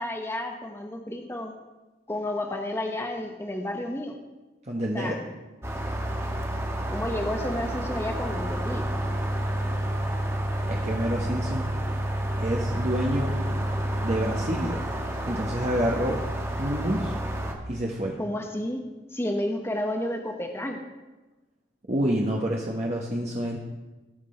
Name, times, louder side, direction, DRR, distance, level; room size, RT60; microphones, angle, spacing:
voice 1, 0.0-1.5 2.1-4.1 4.9-5.2 6.9-8.8 18.2-18.8 19.1-20.8, left 1 dB, 15° left, 3 dB, 1.0 m, -31 dB
voice 2, 4.7-5.2 10.7-11.7 12.4-13.3 14.0-14.8 15.3-16.2 16.6-17.1 17.7-18.2 21.9-23.6, equal, 40° right, -2 dB, 1.1 m, -28 dB
sound 1, 5.6-17.5, right 1 dB, 15° right, 1.2 m, -29 dB
18.0 x 6.0 x 4.4 m, 1.1 s
head